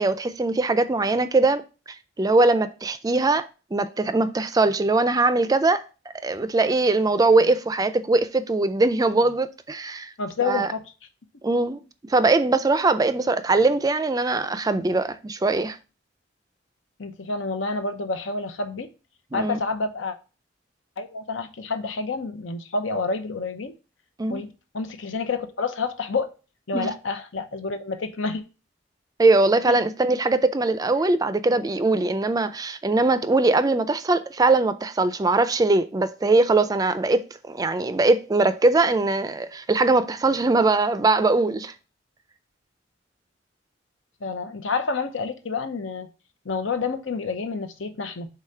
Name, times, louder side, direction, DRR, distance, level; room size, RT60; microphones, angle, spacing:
voice 1, 0.0-1.6 2.2-5.9 6.2-10.1 10.5-10.7 11.4-11.8 12.1-15.8 19.3-19.6 24.2-24.4 26.7-26.9 29.2-41.7, right 3 dB, 20° right, 0.4 m, -21 dB
voice 2, 10.2-10.8 17.0-18.9 19.3-20.2 21.0-23.7 24.3-26.3 26.7-28.4 29.7-29.8 44.2-46.1 46.4-48.3, left 4 dB, 90° left, 0.8 m, -29 dB
4.9 x 3.8 x 5.5 m
head